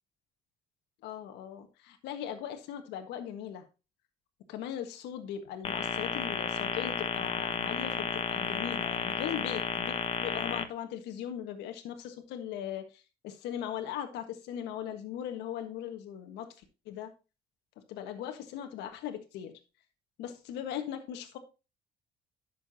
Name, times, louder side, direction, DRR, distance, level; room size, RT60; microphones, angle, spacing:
voice 1, 1.0-3.6 4.5-16.5 16.8-17.1 17.9-19.6 20.2-21.4, left 10 dB, 85° left, 6 dB, 1.5 m, -39 dB
sound 1, 5.6-10.6, left 5 dB, 35° left, 1.2 m, -32 dB
11.0 x 6.9 x 2.8 m, 0.29 s
cardioid pair, 110°, 17 cm